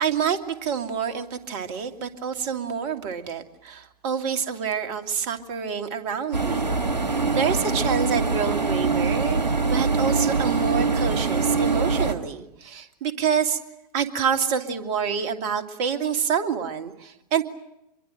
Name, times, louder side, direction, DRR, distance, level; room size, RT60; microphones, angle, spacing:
voice 1, 0.0-6.8 7.3-13.6 13.9-17.4, right 7 dB, 45° right, 7 dB, 2.7 m, -27 dB
sound 1, 6.3-12.1, right 4 dB, 80° right, 2.2 m, -23 dB
25.5 x 23.0 x 9.1 m, 0.85 s
figure-of-eight pair, 100°, 21 cm